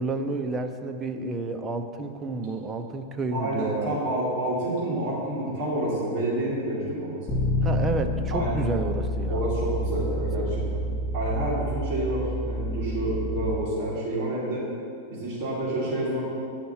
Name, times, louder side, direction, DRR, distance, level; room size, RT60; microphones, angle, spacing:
voice 1, 0.0-4.0 7.6-9.5, right 3 dB, 15° right, 6 dB, 0.6 m, -30 dB
voice 2, 3.3-7.3 8.3-8.5 9.3-10.8 11.1-14.6 15.1-16.2, right 1 dB, 30° right, -9 dB, 2.5 m, -28 dB
Bass guitar, 7.3-13.5, equal, 15° left, 1.8 m, -28 dB
9.5 x 5.8 x 7.1 m, 2.4 s
supercardioid pair, 155°, 0 cm